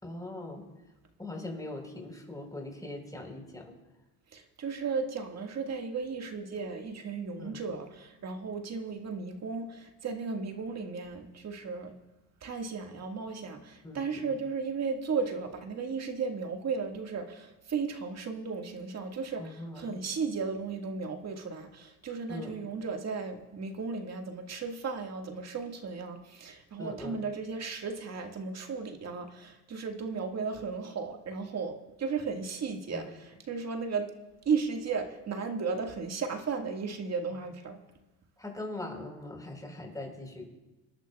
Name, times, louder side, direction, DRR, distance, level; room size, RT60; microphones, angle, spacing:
voice 1, 0.0-0.6 1.2-3.6 7.4-7.6 13.8-14.3 19.4-19.9 22.3-22.5 26.8-27.2 32.9-33.1 38.4-40.5, left 2 dB, 10° left, 1 dB, 4.3 m, -41 dB
voice 2, 4.3-11.9 12.4-34.1 34.5-37.8, right 5 dB, 40° right, 3 dB, 1.8 m, -35 dB
25.5 x 11.0 x 2.4 m, 1.1 s
supercardioid pair, 80°, 42 cm